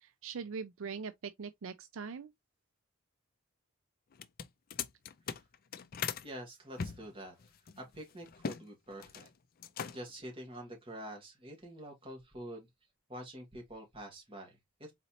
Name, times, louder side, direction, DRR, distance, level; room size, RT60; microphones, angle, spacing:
voice 1, 0.0-2.3, right 5 dB, 70° right, 0.4 m, -42 dB
sound 1, 4.1-6.3 6.8-8.6 8.9-9.3 9.6-10.2, left 7 dB, 45° left, 0.4 m, -40 dB
voice 2, 6.2-7.4 7.8-9.3 9.9-12.7 13.1-14.9, right 1 dB, 25° right, 1.9 m, -46 dB
4.2 x 4.1 x 2.8 m
head